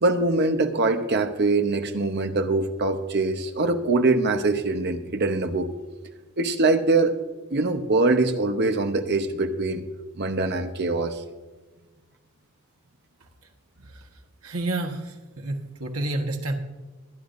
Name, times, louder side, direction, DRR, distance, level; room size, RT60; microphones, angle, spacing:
voice 1, 0.0-5.7 6.4-7.2 7.5-9.8 10.2-11.2, right 3 dB, 50° right, 7 dB, 0.9 m, -23 dB
voice 2, 14.4-16.5, right 2 dB, 80° right, 2 dB, 1.4 m, -29 dB
23.0 x 10.0 x 2.6 m, 1.2 s
head